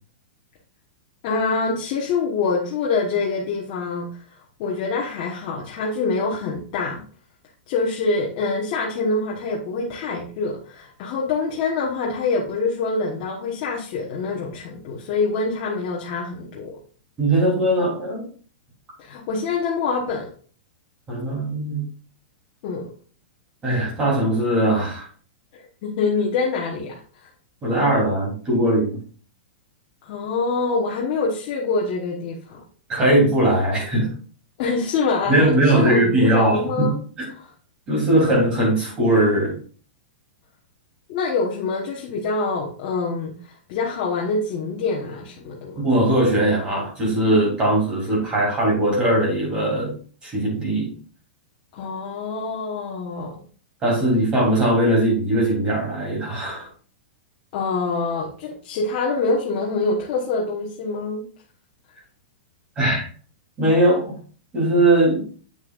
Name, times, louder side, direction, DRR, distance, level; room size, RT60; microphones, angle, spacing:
voice 1, 1.2-4.3 4.6-7.0 7.7-16.8 19.0-20.3 22.6-22.9 25.8-27.3 30.0-32.6 34.6-37.0 37.3-37.5 41.1-45.8 51.7-53.4 57.5-61.3, left 4 dB, 35° left, -3 dB, 1.2 m, -25 dB
voice 2, 17.2-18.2 21.1-21.9 23.6-25.1 27.6-29.0 32.9-34.1 35.3-36.9 37.9-39.6 45.8-49.9 50.2-50.9 53.8-56.7 62.8-63.1 63.6-64.1 64.5-65.2, right 1 dB, 15° right, -4 dB, 3.3 m, -20 dB
7.9 x 7.3 x 2.5 m, 0.42 s
supercardioid pair, 175°, 6 cm